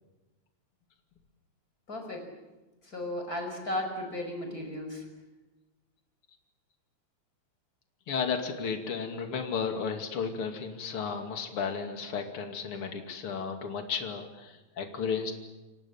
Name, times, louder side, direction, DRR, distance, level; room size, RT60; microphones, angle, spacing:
voice 1, 1.9-2.3 2.8-5.1, left 1 dB, 30° left, 4 dB, 6.0 m, -35 dB
voice 2, 8.1-15.3, left 6 dB, 50° left, 4 dB, 3.3 m, -33 dB
29.0 x 24.5 x 7.3 m, 1.1 s
omnidirectional pair, 3.4 m